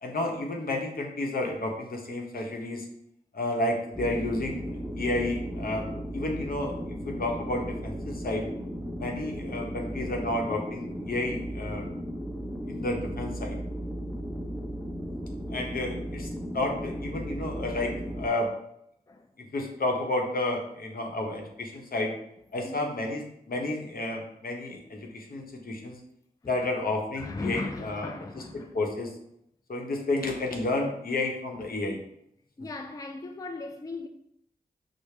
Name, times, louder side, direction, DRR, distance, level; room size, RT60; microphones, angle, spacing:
voice 1, 0.0-2.9 3.3-4.7 5.0-5.9 6.1-8.5 9.0-11.9 12.7-13.6 15.5-18.5 19.5-22.1 22.5-26.0 26.5-28.4 28.7-29.1 29.7-32.0, left 2 dB, 65° left, 0.8 m, -31 dB
sound 1, 3.9-18.3, equal, ahead, 0.9 m, -36 dB
voice 2, 22.6-23.0 27.2-28.7 32.6-34.1, left 3 dB, 20° left, 0.4 m, -37 dB
4.8 x 2.1 x 3.3 m
cardioid pair, 45°, 16 cm